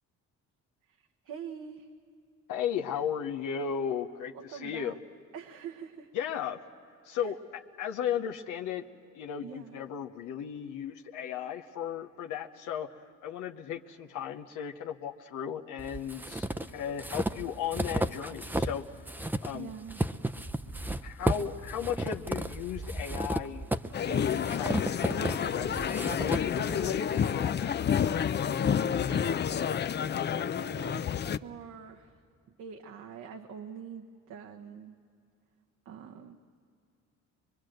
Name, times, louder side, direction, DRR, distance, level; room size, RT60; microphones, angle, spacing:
voice 1, 0.9-1.9 4.3-5.0 5.3-6.1 7.2-7.3 9.4-9.8 19.5-20.0 29.1-32.2 32.6-35.0 35.8-36.4, right 7 dB, 90° right, 2 dB, 1.1 m, -45 dB
voice 2, 2.5-4.9 6.1-6.6 7.0-8.8 9.1-12.9 13.2-18.8 19.2-19.7 21.0-23.7 24.0-27.8, left 8 dB, 90° left, 3 dB, 0.9 m, -35 dB
sound 1, 15.8-18.8 19.1-27.2, right 1 dB, 5° right, 0.6 m, -33 dB
sound 2, 23.9-31.4, left 8 dB, 35° left, 0.5 m, -29 dB
24.0 x 22.5 x 7.8 m, 2.4 s
cardioid pair, 90°, 30 cm